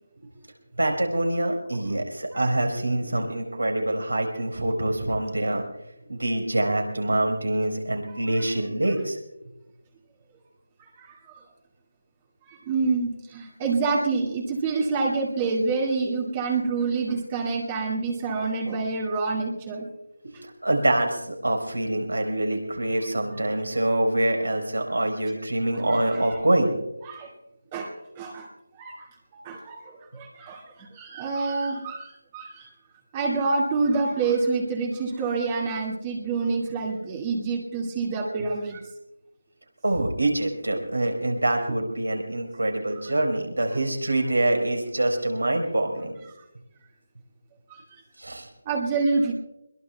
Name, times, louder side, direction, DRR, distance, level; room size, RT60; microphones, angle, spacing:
voice 1, 0.8-5.6 6.0-9.2 20.2-26.7 39.8-46.2 48.2-48.5, right 1 dB, 80° right, 3 dB, 4.5 m, -25 dB
voice 2, 8.1-8.5 10.8-11.2 12.5-19.9 25.7-26.4 27.0-27.3 27.7-28.5 28.7-29.1 29.4-32.7 33.1-38.9 47.7-48.0 48.7-49.3, right 4 dB, 20° right, -1 dB, 2.1 m, -27 dB
23.5 x 21.5 x 2.3 m, 0.90 s
figure-of-eight pair, 160°, 0 cm